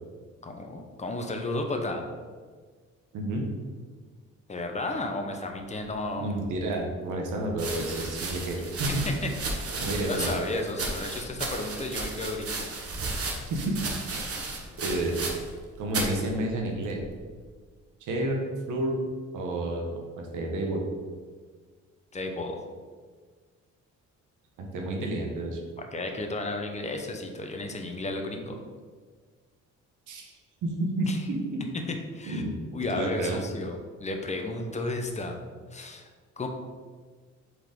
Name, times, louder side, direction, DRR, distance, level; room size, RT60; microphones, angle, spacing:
voice 1, 0.4-2.0 4.5-6.4 9.0-9.7 10.0-12.7 22.1-22.6 25.8-28.6 31.1-31.2 31.9-32.4 32.7-35.4 35.7-36.1 36.4-36.5, left 2 dB, 25° left, 3 dB, 0.9 m, -33 dB
voice 2, 3.1-3.4 6.2-9.1 9.8-10.3 13.5-13.8 14.1-14.2 14.8-15.2 15.8-17.0 18.0-18.4 18.7-19.0 19.3-20.9 24.6-25.6 30.1-30.3 30.6-31.6 32.3-32.5 32.9-33.4, right 1 dB, 80° right, 1 dB, 1.2 m, -30 dB
sound 1, 6.5-6.6 7.5-15.6 15.9-16.2 17.0-17.4, right 3 dB, 50° right, 1.1 m, -34 dB
4.8 x 3.8 x 5.2 m, 1.5 s
cardioid pair, 90°, 30 cm